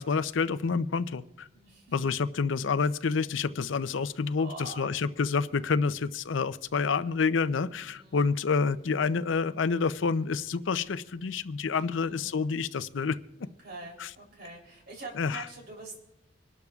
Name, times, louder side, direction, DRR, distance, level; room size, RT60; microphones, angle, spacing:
voice 1, 0.0-1.5 1.9-13.2 14.0-14.1 15.2-15.4, left 5 dB, 85° left, 14 dB, 0.5 m, -28 dB
voice 2, 1.5-2.1 4.2-4.9 7.8-8.3 11.6-12.6 13.4-16.0, right 2 dB, 55° right, 1 dB, 3.4 m, -45 dB
26.0 x 12.0 x 2.4 m, 0.96 s
head